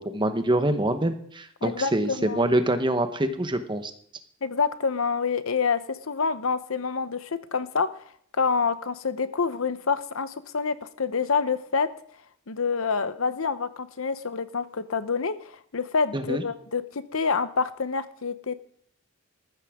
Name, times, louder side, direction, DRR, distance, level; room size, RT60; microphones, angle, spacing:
voice 1, 0.0-3.9 16.1-16.4, right 1 dB, 25° right, 8 dB, 1.1 m, -25 dB
voice 2, 1.6-2.5 4.4-7.9 8.4-11.9 12.5-18.5, left 5 dB, 85° left, 12 dB, 0.9 m, -27 dB
14.0 x 13.0 x 3.7 m, 0.65 s
head